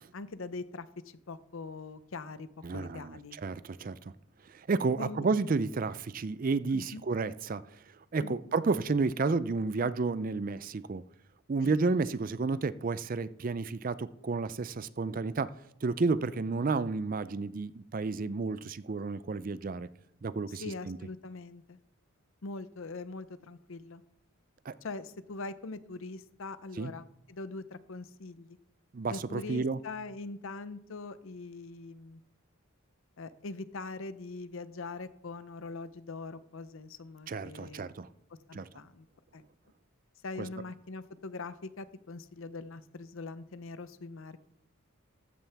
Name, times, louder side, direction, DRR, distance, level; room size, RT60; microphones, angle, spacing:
voice 1, 0.1-2.5 2.7-3.4 5.0-5.2 6.7-7.0 8.2-8.4 11.6-11.8 20.5-21.8 22.4-24.0 24.8-28.6 29.1-32.2 33.2-37.9 38.5-39.1 39.3-39.4 40.2-44.5, left 3 dB, 65° left, 0.6 m, -42 dB
voice 2, 2.6-4.0 4.5-7.8 8.1-11.0 11.5-15.5 15.8-19.9 20.2-21.0 24.7-24.8 26.8-26.9 28.9-29.8 37.3-38.1 38.5-38.7, right 4 dB, 40° right, 0.4 m, -31 dB
14.5 x 11.0 x 3.4 m
head